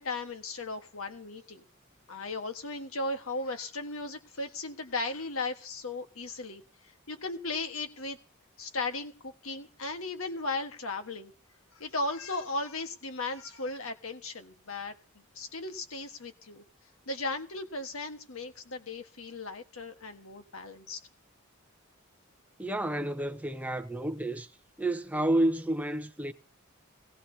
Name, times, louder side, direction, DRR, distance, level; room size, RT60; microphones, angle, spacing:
voice 1, 0.0-1.6 2.1-6.6 7.1-8.2 8.6-11.3 11.7-16.6 17.1-21.0, left 3 dB, 80° left, 1.5 m, -36 dB
voice 2, 22.6-24.5 24.8-26.3, right 1 dB, 5° right, 0.8 m, -30 dB
18.0 x 17.0 x 2.8 m
head